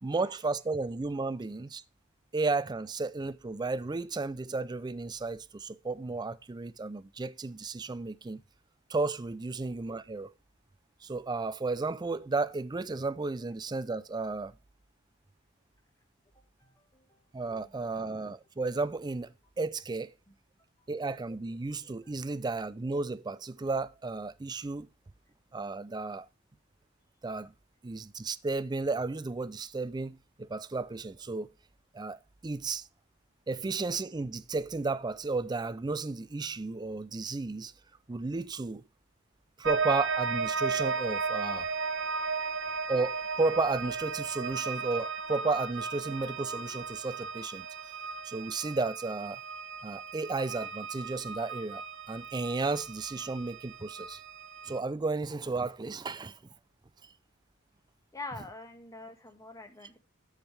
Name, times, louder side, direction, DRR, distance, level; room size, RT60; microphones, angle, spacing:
voice 1, 0.0-1.8 2.3-8.4 8.9-10.3 11.0-14.5 17.3-20.1 20.9-24.9 25.5-26.3 27.2-27.5 27.8-31.5 31.9-32.9 33.5-37.7 38.1-38.8 39.6-41.7 42.9-47.7 48.2-49.4 49.8-54.2 54.7-56.4 57.0-57.1, right 3 dB, 20° right, 0.4 m, -33 dB
voice 2, 16.6-17.2 17.6-18.0 20.3-20.4 20.8-21.0 22.0-22.3 58.1-60.0, left 3 dB, 15° left, 1.4 m, -46 dB
sound 1, 39.6-54.8, right 5 dB, 65° right, 1.0 m, -35 dB
13.5 x 4.9 x 3.3 m
head